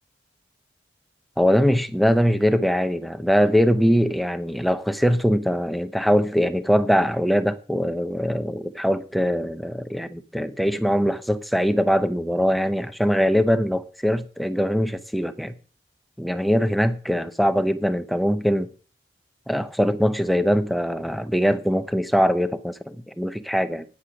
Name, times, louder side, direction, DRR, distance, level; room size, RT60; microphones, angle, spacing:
voice 1, 1.4-15.5 16.2-18.7 19.5-23.8, equal, ahead, 0.7 m, -22 dB
10.5 x 10.0 x 5.1 m
head